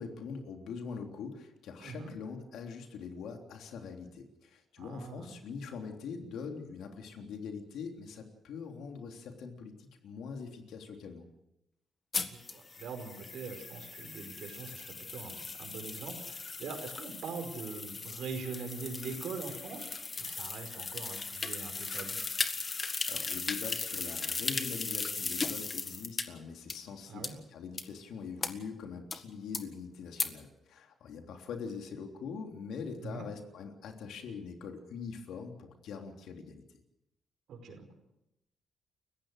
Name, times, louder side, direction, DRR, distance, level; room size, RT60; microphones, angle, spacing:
voice 1, 0.0-11.3 23.1-36.6, left 5 dB, 90° left, 3 dB, 3.3 m, -43 dB
voice 2, 1.8-2.1 4.8-5.3 12.3-22.2 27.1-27.3 33.0-33.3 37.5-37.9, right 5 dB, 80° right, 6 dB, 5.1 m, -43 dB
sound 1, 12.1-26.2 26.7-26.8 27.2-27.3 27.8-27.9 28.4-28.5 29.1-29.2 29.5-29.6 30.2-30.3, left 4 dB, 35° left, 1.7 m, -37 dB
29.5 x 15.5 x 6.6 m, 0.89 s
cardioid pair, 120°, 0 cm